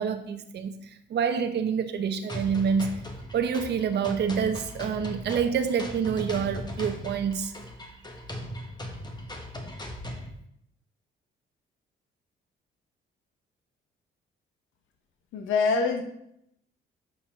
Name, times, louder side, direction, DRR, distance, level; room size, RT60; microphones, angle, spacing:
voice 1, 0.0-2.9 3.3-7.5, right 6 dB, 60° right, 7 dB, 0.8 m, -27 dB
sound 1, 2.3-10.3, left 1 dB, 20° left, 1.6 m, -38 dB
voice 2, 15.3-16.0, left 4 dB, 90° left, 5 dB, 1.2 m, -24 dB
7.0 x 5.4 x 5.8 m, 0.75 s
cardioid pair, 90°, 20 cm